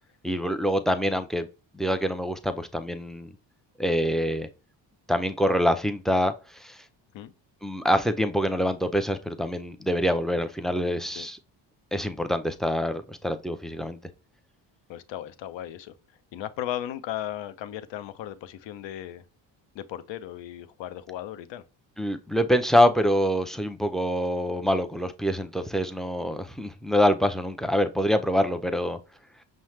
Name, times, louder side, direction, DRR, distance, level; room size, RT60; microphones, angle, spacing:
voice 1, 0.2-1.5 1.7-3.3 3.8-4.5 5.1-6.8 7.6-11.4 11.9-14.0 22.0-29.0, equal, ahead, 0.5 m, -25 dB
voice 2, 14.9-15.9 16.3-19.2 19.7-21.6, left 12 dB, 70° left, 0.7 m, -36 dB
5.5 x 2.1 x 3.1 m
supercardioid pair, 65°, 47 cm